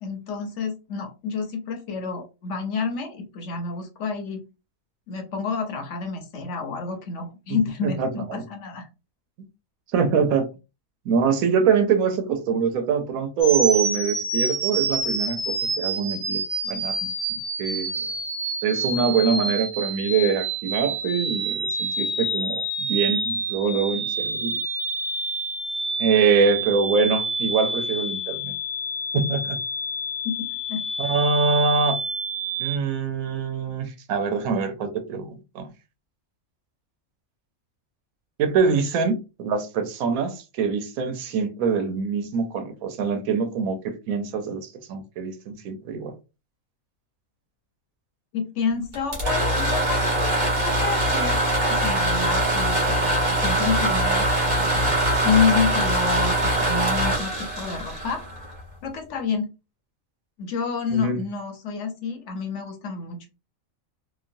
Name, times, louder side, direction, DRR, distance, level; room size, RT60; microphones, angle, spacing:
voice 1, 0.0-4.4 5.1-8.9 30.2-30.4 30.7-30.8 48.3-58.2 58.8-59.5 60.4-63.3, left 5 dB, 65° left, 1.0 m, -29 dB
voice 2, 7.8-8.4 9.9-10.5 11.1-16.9 17.3-18.1 18.6-24.6 26.0-28.5 29.1-29.6 31.0-32.0 32.6-35.7 38.4-46.1 60.9-61.2, right 5 dB, 85° right, 1.1 m, -24 dB
sound 1, 13.4-32.8, right 2 dB, 55° right, 1.3 m, -28 dB
sound 2, 48.9-58.7, right 1 dB, 35° right, 1.2 m, -23 dB
3.0 x 2.2 x 2.5 m
omnidirectional pair, 1.4 m